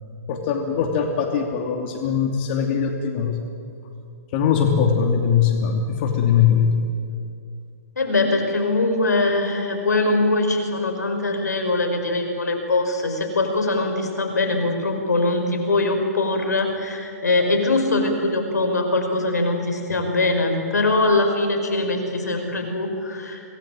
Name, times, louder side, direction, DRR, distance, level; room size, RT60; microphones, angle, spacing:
voice 1, 0.3-3.4 4.3-6.8, left 7 dB, 40° left, 3 dB, 2.8 m, -21 dB
voice 2, 8.0-23.4, left 2 dB, 90° left, 4 dB, 5.2 m, -22 dB
25.5 x 19.5 x 9.2 m, 2.4 s
hypercardioid pair, 130°, 9 cm